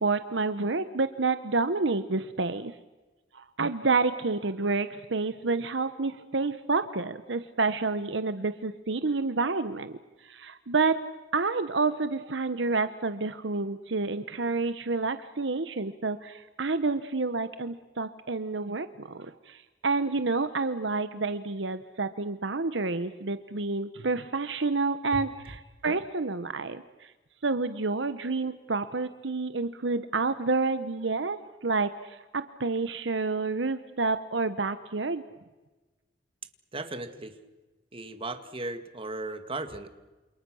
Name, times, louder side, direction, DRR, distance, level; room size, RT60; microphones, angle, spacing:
voice 1, 0.0-2.7 3.3-10.0 10.2-11.1 11.3-25.3 25.8-27.1 27.4-35.2, right 3 dB, 70° right, 11 dB, 1.1 m, -29 dB
voice 2, 36.7-37.4 37.9-39.9, right 2 dB, 30° right, 8 dB, 2.0 m, -36 dB
28.5 x 28.0 x 6.4 m, 1.2 s
head